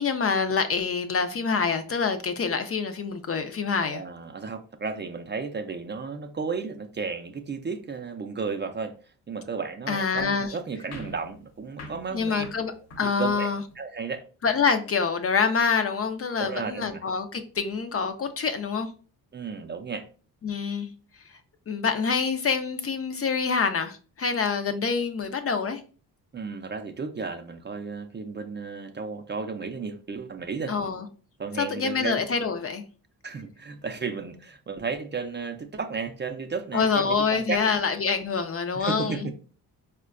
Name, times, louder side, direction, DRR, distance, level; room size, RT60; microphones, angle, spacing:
voice 1, 0.0-4.0 9.9-10.6 12.1-13.6 14.4-18.9 20.4-20.9 21.7-25.8 30.7-31.1 31.6-32.8 36.7-39.3, left 5 dB, 35° left, 0.4 m, -26 dB
voice 2, 3.8-8.9 9.3-12.4 13.2-13.5 13.8-14.2 16.4-17.0 19.3-20.1 26.3-30.7 31.4-32.2 33.2-37.6 38.8-39.3, right 5 dB, 30° right, 0.5 m, -33 dB
sound 1, 10.9-13.8, left 2 dB, 75° left, 1.0 m, -45 dB
4.3 x 2.2 x 2.4 m
supercardioid pair, 60°, 40 cm